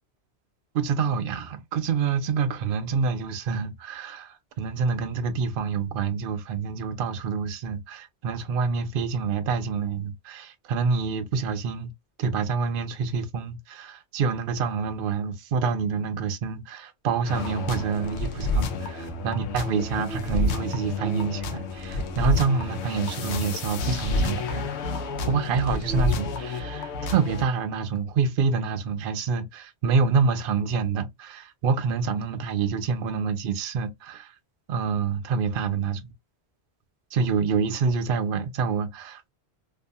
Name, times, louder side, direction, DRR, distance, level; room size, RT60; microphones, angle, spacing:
voice 1, 0.7-11.9 12.2-24.7 25.3-34.3 34.7-36.1 37.1-39.3, right 5 dB, 60° right, 0.7 m, -27 dB
sound 1, 17.3-27.4, left 2 dB, 90° left, 0.9 m, -29 dB
2.7 x 2.4 x 2.2 m
omnidirectional pair, 1.1 m